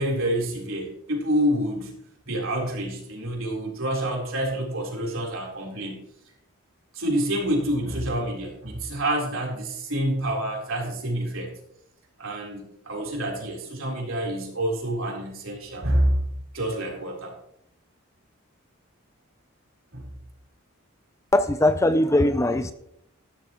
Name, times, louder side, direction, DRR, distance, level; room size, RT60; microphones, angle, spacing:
voice 1, 0.0-2.0 2.2-6.1 6.9-11.5 12.2-16.2 16.5-17.4 19.9-20.1, right 1 dB, 70° right, -1 dB, 3.9 m, -27 dB
voice 2, 21.3-22.7, left 1 dB, 15° left, 10 dB, 0.5 m, -20 dB
15.0 x 12.0 x 3.1 m, 0.76 s
head